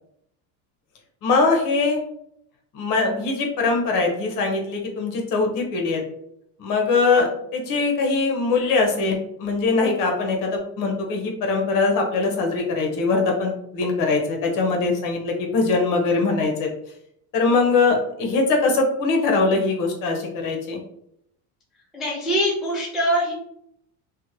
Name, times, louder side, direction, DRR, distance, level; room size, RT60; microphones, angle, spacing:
voice 1, 1.2-2.0 2.7-6.0 6.6-16.7 17.3-20.8, left 3 dB, 50° left, 1 dB, 0.8 m, -22 dB
voice 2, 21.9-23.3, equal, ahead, -6 dB, 0.4 m, -23 dB
2.8 x 2.1 x 2.7 m, 0.74 s
cardioid pair, 145°, 40 cm